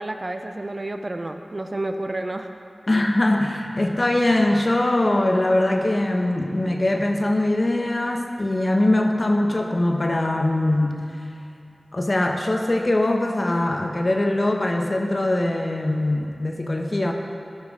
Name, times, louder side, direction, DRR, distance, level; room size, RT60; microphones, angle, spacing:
voice 1, 0.0-2.5, right 2 dB, 40° right, 6 dB, 0.4 m, -30 dB
voice 2, 2.9-11.0 11.9-17.1, left 1 dB, 45° left, 3 dB, 0.7 m, -22 dB
11.5 x 5.4 x 3.6 m, 2.4 s
wide cardioid pair, 55°, 0 cm